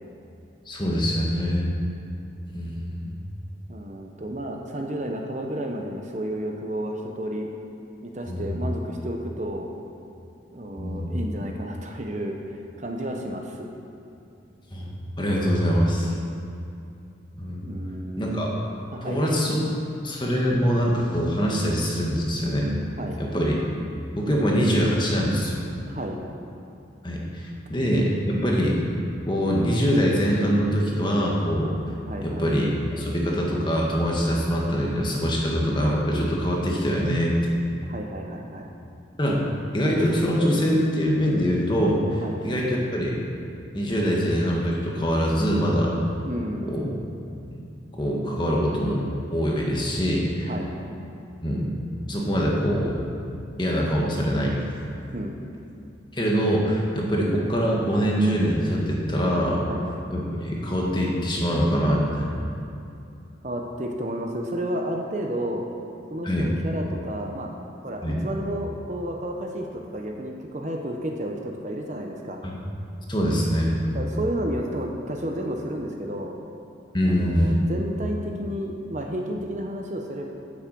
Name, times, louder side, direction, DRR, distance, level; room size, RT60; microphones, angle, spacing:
voice 1, 0.6-1.7 2.5-3.1 8.3-8.6 10.8-11.2 14.7-16.1 17.4-17.7 18.2-18.5 19.0-19.6 20.0-22.7 23.2-23.5 24.1-25.6 27.0-28.8 29.3-31.8 32.2-32.7 33.0-37.4 39.2-39.4 39.7-43.2 43.7-46.0 46.6-46.9 47.5-47.6 48.0-50.5 51.4-51.7 52.1-52.9 53.6-54.6 56.1-59.6 60.1-62.3 66.2-66.5 68.0-68.2 72.4-72.5 73.1-74.0 76.9-77.6, equal, 25° left, -2 dB, 1.7 m, -24 dB
voice 2, 3.7-7.5 8.0-9.7 10.5-12.4 12.8-13.7 17.6-18.5 18.9-19.2 23.0-23.2 25.9-26.2 32.1-32.5 37.9-38.7 42.2-42.4 46.2-46.8 50.5-50.7 55.1-55.3 59.6-59.8 63.4-65.7 66.1-67.5 67.8-72.4 73.9-76.3 77.0-80.3, right 1 dB, 40° right, 2 dB, 0.9 m, -31 dB
9.8 x 8.2 x 7.6 m, 2.6 s
head